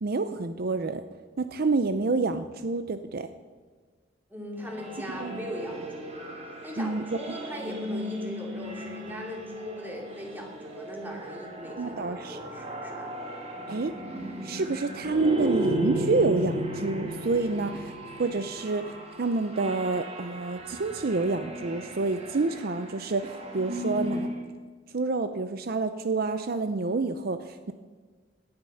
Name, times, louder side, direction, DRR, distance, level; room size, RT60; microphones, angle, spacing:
voice 1, 0.0-1.0 1.4-3.3 5.2-5.4 6.8-7.0 11.8-12.4 13.7-13.9 14.4-17.9 18.2-18.8 19.2-24.3 24.9-27.7, right 3 dB, 55° right, 10 dB, 0.6 m, -28 dB
voice 2, 4.3-6.2 6.6-13.1, equal, 10° right, 0 dB, 3.0 m, -39 dB
sound 1, 4.6-24.4, right 1 dB, 35° right, 2.4 m, -35 dB
18.0 x 10.5 x 5.7 m, 1.5 s
head